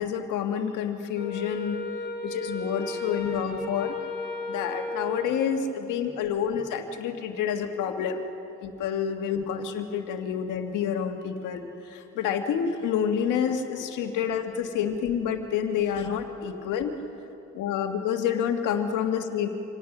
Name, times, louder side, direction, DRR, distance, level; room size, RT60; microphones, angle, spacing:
voice 1, 0.0-1.8 2.2-3.9 4.5-8.2 8.6-16.9 17.5-19.5, left 8 dB, 90° left, 5 dB, 1.8 m, -28 dB
Wind instrument woodwind instrument, 1.1-5.8, left 2 dB, 35° left, 3.8 m, -35 dB
26.5 x 18.0 x 6.0 m, 2.8 s
cardioid pair, 90°, 30 cm